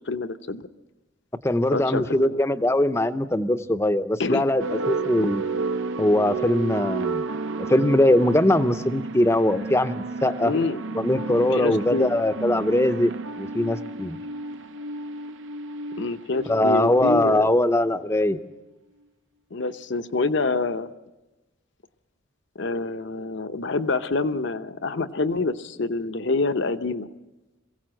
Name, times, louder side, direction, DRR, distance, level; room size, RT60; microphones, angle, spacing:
voice 1, 0.1-0.6 1.7-2.4 4.2-4.4 10.4-10.8 11.5-12.1 16.0-17.5 19.5-20.9 22.6-27.1, left 3 dB, 60° left, 10 dB, 0.8 m, -26 dB
voice 2, 1.4-5.4 6.0-7.3 7.7-10.5 11.0-13.1 13.4-14.2 16.5-18.4, left 1 dB, 15° left, 11 dB, 0.6 m, -21 dB
sound 1, 4.6-18.0, right 4 dB, 65° right, 0.7 m, -32 dB
22.5 x 16.0 x 7.7 m, 1.1 s
head